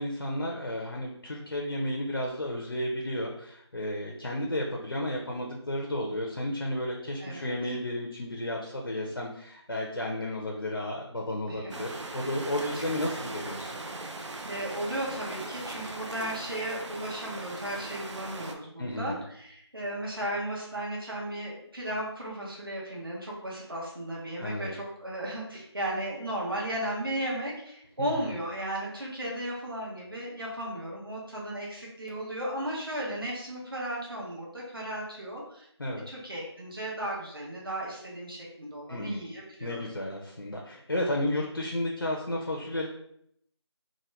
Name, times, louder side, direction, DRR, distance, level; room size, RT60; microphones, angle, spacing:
voice 1, 0.0-13.7 18.8-19.2 24.4-24.8 28.0-28.3 35.8-36.0 38.9-39.2 39.6-42.9, left 1 dB, 55° left, -1 dB, 0.5 m, -33 dB
sound 1, 11.7-18.5, right 2 dB, 85° right, 0.5 m, -39 dB
voice 2, 14.5-35.7 36.1-39.8, right 1 dB, 50° right, -4 dB, 1.0 m, -35 dB
2.9 x 2.1 x 3.1 m, 0.71 s
figure-of-eight pair, 175°, 15 cm